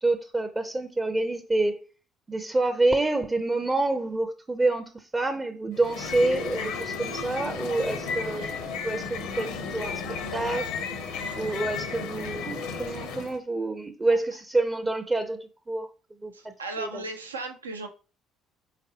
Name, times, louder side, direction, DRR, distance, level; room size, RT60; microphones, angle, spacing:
voice 1, 0.0-1.8 2.3-10.0 10.3-10.7 11.4-15.9 16.2-17.0, right 2 dB, 20° right, 0.5 m, -27 dB
sound 1, 5.7-13.4, left 5 dB, 70° left, 0.6 m, -33 dB
voice 2, 16.3-17.9, right 2 dB, 90° right, 0.4 m, -36 dB
4.1 x 3.8 x 2.7 m
hypercardioid pair, 55°, 0 cm